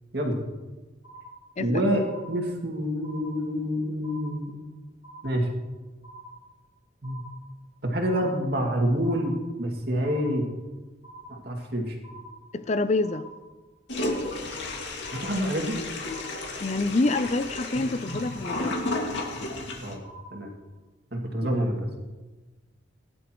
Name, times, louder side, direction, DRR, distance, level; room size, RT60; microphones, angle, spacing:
sound 1, 1.0-1.7 2.0-2.7 3.0-3.7 4.0-4.7 5.0-5.7 6.0-6.7 7.0-7.7 8.0-8.7 9.0-9.7 10.0-10.7 11.0-11.7 12.0-12.7 13.0-13.7 14.0-14.7 15.0-15.7 16.0-16.7 17.0-17.7 18.0-18.7 19.0-19.7 20.0-20.7, right 1 dB, 85° left, 4.0 m, -47 dB
voice 1, 1.6-4.6 5.2-5.5 7.0-7.2 7.8-10.5 11.3-12.0 15.1-15.8 19.8-20.0 20.3-20.5 21.1-21.9, equal, 55° right, 2.3 m, -27 dB
voice 2, 12.5-13.3 16.6-18.8, left 2 dB, 35° left, 0.5 m, -26 dB
Toilet flush, 13.9-19.9, left 2 dB, 65° left, 2.2 m, -33 dB
19.0 x 11.5 x 3.1 m
head